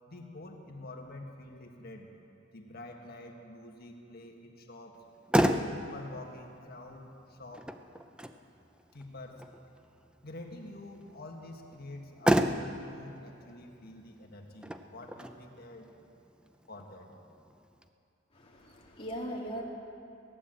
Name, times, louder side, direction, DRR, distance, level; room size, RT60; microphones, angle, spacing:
voice 1, 0.1-2.1 2.5-5.0 5.7-7.7 8.9-9.4 10.2-15.9 16.7-17.1, left 2 dB, 55° left, 2 dB, 1.6 m, -47 dB
Motor vehicle (road), 4.9-17.9, equal, 5° right, 0.5 m, -34 dB
voice 2, 18.3-19.6, equal, 30° left, -3 dB, 2.4 m, -39 dB
17.0 x 10.5 x 7.7 m, 2.6 s
head